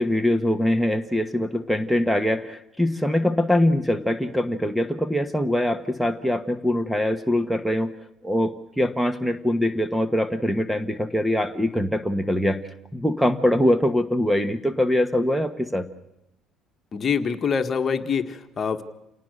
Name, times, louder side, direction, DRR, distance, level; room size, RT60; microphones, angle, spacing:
voice 1, 0.0-7.9 8.2-12.6 12.9-15.9, left 1 dB, ahead, 12 dB, 1.3 m, -23 dB
voice 2, 16.9-18.8, left 6 dB, 40° left, 7 dB, 1.7 m, -25 dB
28.0 x 18.5 x 6.7 m, 0.85 s
cardioid pair, 100°, 0 cm